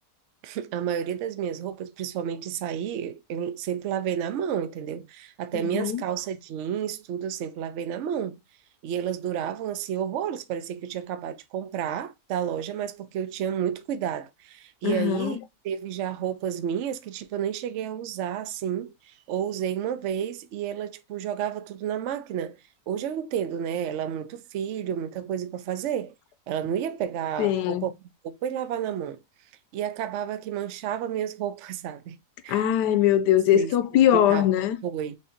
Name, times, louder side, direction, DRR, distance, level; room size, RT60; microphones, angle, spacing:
voice 1, 0.4-8.4 8.8-15.4 15.6-22.6 22.9-26.1 26.5-27.9 28.2-29.2 29.7-32.2 32.4-32.7 33.5-33.7 34.1-34.4 34.8-35.2, right 9 dB, 65° right, 0.7 m, -31 dB
voice 2, 5.5-6.0 14.8-15.4 27.4-27.9 32.5-34.8, left 11 dB, 85° left, 1.2 m, -22 dB
6.3 x 2.7 x 2.6 m
omnidirectional pair, 1.8 m